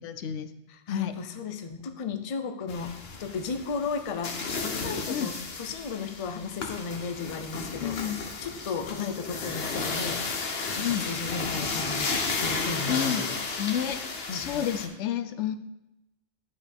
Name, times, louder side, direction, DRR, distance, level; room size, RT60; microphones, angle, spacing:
voice 1, 0.0-0.5 0.9-1.1 5.1-5.3 7.8-8.2 10.8-11.1 12.9-13.2 13.6-14.0 14.3-15.6, left 9 dB, 80° left, 11 dB, 0.9 m, -30 dB
voice 2, 0.7-10.3 10.8-13.4 14.3-14.7, left 5 dB, 40° left, 8 dB, 0.5 m, -35 dB
sound 1, 2.7-14.9, left 4 dB, 60° left, 1.1 m, -33 dB
11.0 x 4.8 x 3.5 m, 0.92 s
omnidirectional pair, 1.2 m